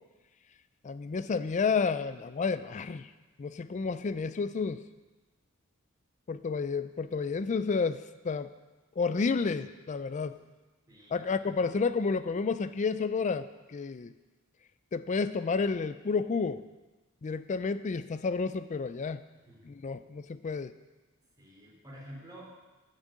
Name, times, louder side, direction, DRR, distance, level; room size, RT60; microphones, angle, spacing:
voice 1, 0.8-3.1 3.4-4.8 6.3-8.5 9.0-10.3 11.1-14.1 14.9-16.6 17.2-19.2 19.6-20.7, left 4 dB, 35° left, 12 dB, 0.4 m, -31 dB
voice 2, 10.9-11.7 19.3-19.7 21.4-22.5, equal, 20° right, -4 dB, 3.5 m, -50 dB
11.5 x 6.5 x 7.4 m, 1.2 s
head